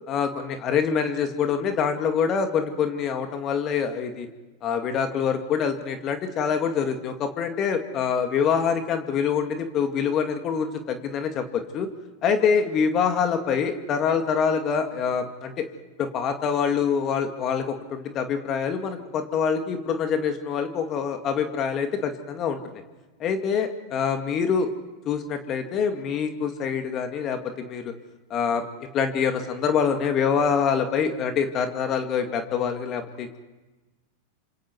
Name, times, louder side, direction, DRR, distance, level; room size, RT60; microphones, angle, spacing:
voice 1, 0.1-4.3 4.6-11.9 12.2-15.6 16.0-22.8 23.2-24.7 25.1-27.9 28.3-28.7 28.9-33.4, left 6 dB, 40° left, 6 dB, 2.4 m, -25 dB
27.5 x 26.5 x 4.7 m, 1.2 s
hypercardioid pair, 100°, 0 cm